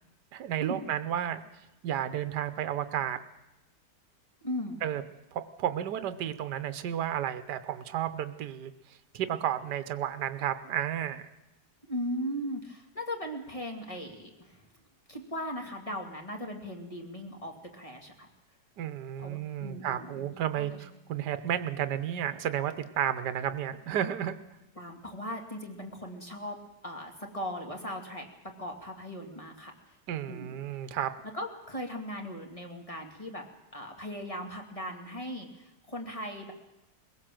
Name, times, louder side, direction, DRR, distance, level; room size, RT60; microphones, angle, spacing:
voice 1, 0.3-1.4 1.8-3.2 4.8-5.0 5.3-11.3 18.8-24.3 30.1-31.1, right 10 dB, 80° right, 11 dB, 1.5 m, -32 dB
voice 2, 4.4-4.8 11.9-14.7 15.1-18.3 19.2-20.3 20.6-20.8 24.8-26.6 26.8-29.7 30.3-30.5 31.3-33.4 33.7-36.5, equal, 20° left, 2 dB, 2.4 m, -38 dB
21.5 x 17.0 x 7.7 m, 0.93 s
omnidirectional pair, 1.8 m